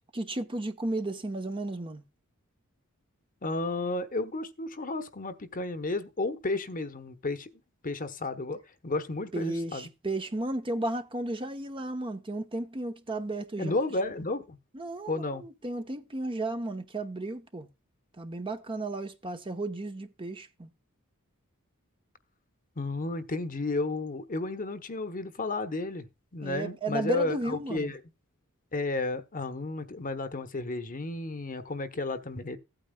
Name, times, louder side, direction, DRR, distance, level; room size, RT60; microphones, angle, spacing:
voice 1, 0.1-2.0 9.3-13.7 14.7-17.7 18.2-20.7 26.4-27.9, right 2 dB, 25° right, 0.9 m, -34 dB
voice 2, 3.4-7.5 7.8-9.9 13.6-14.6 15.1-15.5 22.8-26.1 26.3-28.0 28.7-32.6, left 2 dB, 40° left, 1.0 m, -32 dB
16.0 x 8.9 x 2.3 m
head